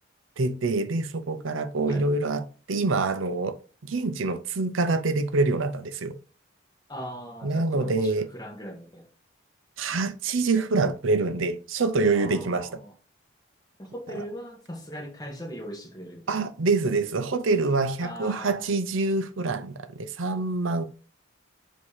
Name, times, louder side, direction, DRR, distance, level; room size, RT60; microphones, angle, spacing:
voice 1, 0.4-3.6 3.8-6.1 7.4-8.3 9.8-12.7 16.3-20.8, right 3 dB, 75° right, 0.6 m, -26 dB
voice 2, 6.9-9.1 12.1-12.9 13.8-16.5 18.0-18.8, equal, 20° left, 1.2 m, -40 dB
7.2 x 2.8 x 4.7 m
head